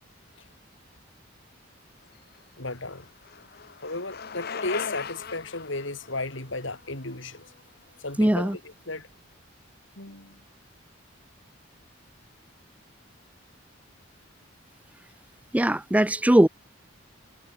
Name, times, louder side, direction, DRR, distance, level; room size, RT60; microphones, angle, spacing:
Bicycle, 2.1-8.1, left 6 dB, 50° left, 1.0 m, -39 dB
voice 1, 2.6-3.1 3.8-7.5 8.0-9.1 10.0-10.4, left 2 dB, 70° left, 4.7 m, -34 dB
voice 2, 8.2-8.6 15.5-16.5, right 1 dB, 5° right, 0.5 m, -20 dB
head